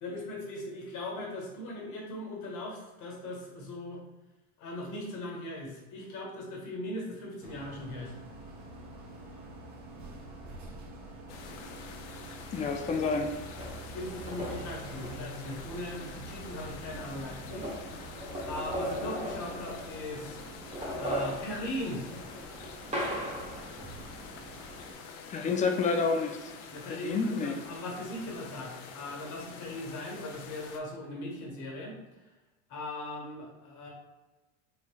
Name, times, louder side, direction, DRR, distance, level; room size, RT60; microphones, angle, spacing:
voice 1, 0.0-4.0 4.6-8.1 13.9-17.7 18.1-20.4 21.0-22.1 26.7-31.9 32.7-33.9, left 1 dB, 50° left, -1 dB, 1.4 m, -39 dB
sound 1, 7.4-24.9, right 2 dB, 45° right, 1.0 m, -47 dB
sound 2, 11.3-30.8, left 5 dB, 70° left, 0.6 m, -47 dB
voice 2, 12.5-13.3 25.3-26.5 26.9-27.6, left 4 dB, 20° left, 4 dB, 0.4 m, -29 dB
sound 3, 13.6-15.7 16.7-16.8 17.1-20.2 20.6-23.7, equal, 20° right, 1.0 m, -37 dB
3.8 x 3.2 x 2.3 m, 1.1 s
supercardioid pair, 105°, 38 cm